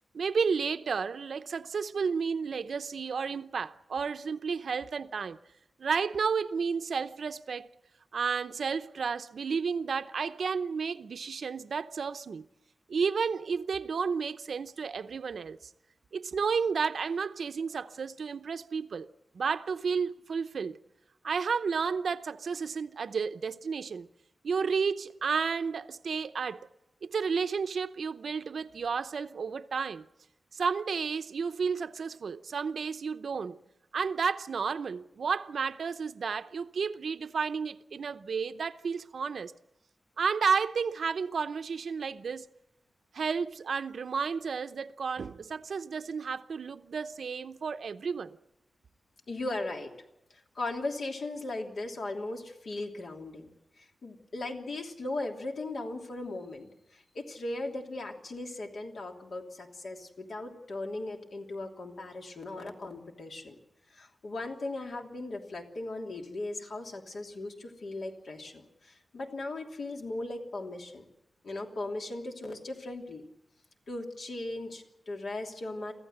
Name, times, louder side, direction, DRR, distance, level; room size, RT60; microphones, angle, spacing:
voice 1, 0.1-5.4 5.8-7.7 8.1-12.5 12.9-15.6 16.1-19.1 19.3-20.8 21.2-24.1 24.4-26.7 27.0-30.1 30.5-33.6 33.9-39.5 40.2-42.5 43.1-48.4, right 5 dB, 75° right, 0.8 m, -32 dB
voice 2, 49.3-49.9 50.3-53.5 53.8-63.5 63.9-71.0 71.4-73.2 73.9-75.9, left 2 dB, 70° left, 3.1 m, -38 dB
24.0 x 15.5 x 8.0 m
wide cardioid pair, 170°, 0 cm